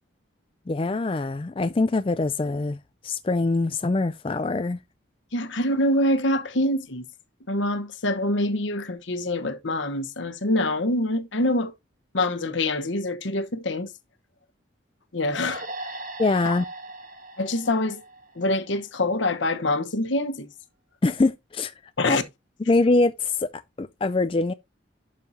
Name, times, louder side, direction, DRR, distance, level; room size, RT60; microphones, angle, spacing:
voice 1, 0.7-2.8 3.0-4.8 16.2-16.7 21.0-21.7 22.1-22.2 22.7-24.5, left 3 dB, 25° left, 0.3 m, -23 dB
voice 2, 5.3-7.1 7.5-11.7 12.1-13.9 15.1-15.6 16.4-16.5 17.4-18.0 18.4-20.5 22.0-22.2, left 1 dB, 75° left, 1.1 m, -25 dB
sound 1, 15.3-18.8, right 2 dB, 40° right, 1.6 m, -39 dB
12.0 x 5.7 x 2.7 m
head